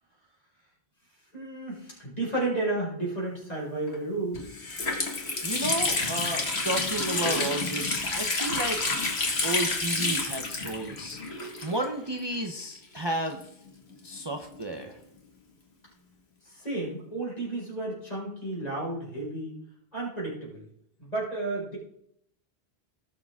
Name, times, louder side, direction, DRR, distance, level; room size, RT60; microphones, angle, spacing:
voice 1, 1.3-4.5 16.4-19.6 19.9-20.7 21.0-21.8, right 2 dB, 40° left, -5 dB, 5.5 m, -32 dB
Water tap faucet, 3.9-4.0 4.3-12.1 12.3-12.4 13.3-14.8, left 3 dB, 90° left, 2.1 m, -29 dB
voice 2, 5.4-9.1 9.4-11.2 11.6-13.4 14.0-15.0, right 1 dB, 25° right, 3 dB, 0.9 m, -32 dB
18.5 x 6.7 x 3.7 m, 0.70 s
omnidirectional pair, 1.0 m